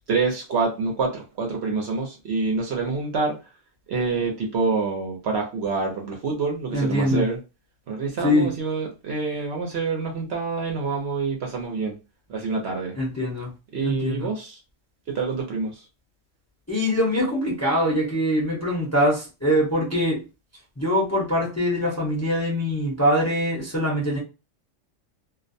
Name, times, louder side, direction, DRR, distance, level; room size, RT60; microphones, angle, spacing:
voice 1, 0.1-3.4 3.9-7.4 7.9-11.9 12.3-12.9 13.7-14.6 15.1-15.8, right 4 dB, 60° right, 0.8 m, -26 dB
voice 2, 6.7-7.3 8.2-8.5 12.9-13.5 13.8-14.3 16.7-20.2 20.8-24.2, equal, 15° left, 0.7 m, -23 dB
2.5 x 2.1 x 2.6 m
omnidirectional pair, 1.3 m